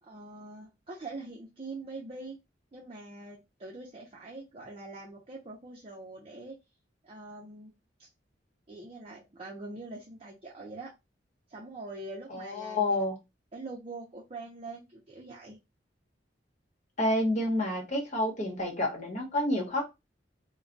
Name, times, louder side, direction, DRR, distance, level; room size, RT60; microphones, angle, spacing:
voice 1, 0.0-2.4 2.7-6.6 7.0-7.7 8.0-8.1 8.7-10.9 11.5-13.0 13.5-15.6, right 2 dB, 30° right, -3 dB, 0.5 m, -43 dB
voice 2, 12.3-13.2 17.0-19.8, left 1 dB, 40° left, 0 dB, 1.0 m, -29 dB
2.2 x 2.2 x 3.8 m, 0.23 s
head